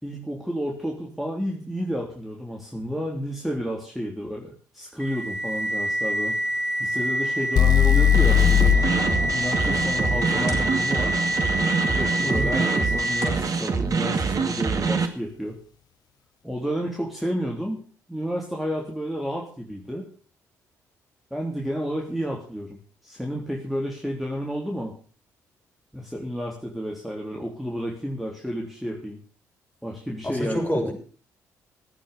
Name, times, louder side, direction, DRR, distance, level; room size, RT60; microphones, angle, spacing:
voice 1, 0.0-6.4 6.8-8.8 9.3-11.2 11.9-15.6 16.4-17.8 18.1-20.1 21.3-24.9 25.9-29.2 29.8-30.8, equal, ahead, -1 dB, 3.6 m, -31 dB
sound 1, 5.0-13.5, right 1 dB, 90° left, 2.3 m, -27 dB
sound 2, 7.6-11.5, left 9 dB, 55° left, 0.9 m, -21 dB
sound 3, 8.1-15.1, right 5 dB, 45° right, 2.0 m, -25 dB
voice 2, 12.2-12.7 30.2-30.9, equal, 20° left, 2 dB, 6.7 m, -27 dB
15.5 x 9.2 x 6.9 m, 0.43 s
hypercardioid pair, 45°, 8 cm